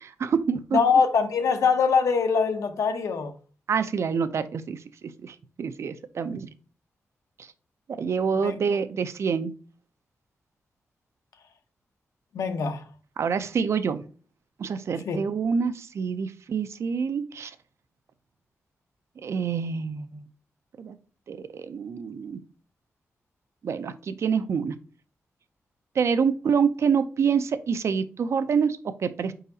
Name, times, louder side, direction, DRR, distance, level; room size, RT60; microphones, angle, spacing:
voice 1, 0.2-0.8 3.7-6.5 7.4-7.5 7.9-9.5 13.2-14.1 14.6-17.5 19.2-20.3 20.8-21.0 21.3-22.4 23.6-24.8 26.0-29.3, right 6 dB, 60° right, 0.4 m, -27 dB
voice 2, 0.7-3.3 8.4-8.5 12.3-12.8 15.1-15.2, left 5 dB, 90° left, 0.7 m, -23 dB
4.8 x 3.9 x 2.7 m
wide cardioid pair, 135°, 5 cm